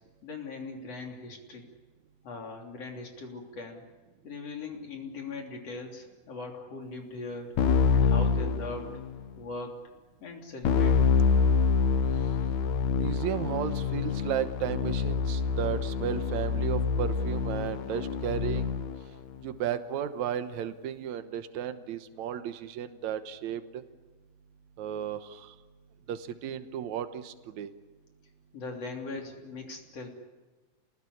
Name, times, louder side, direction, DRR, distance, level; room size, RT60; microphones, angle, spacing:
voice 1, 0.2-1.7 2.2-3.8 4.2-7.5 7.9-9.0 9.4-9.8 10.2-11.1 28.5-30.1, left 3 dB, 55° left, 2 dB, 4.3 m, -40 dB
Keyboard (musical), 7.6-9.3 10.6-19.0, left 5 dB, 70° left, 2.6 m, -26 dB
voice 2, 12.9-18.8 19.4-23.8 24.8-25.5 26.1-27.7, right 9 dB, 75° right, 9 dB, 2.5 m, -34 dB
28.5 x 19.5 x 9.9 m, 1.3 s
omnidirectional pair, 3.4 m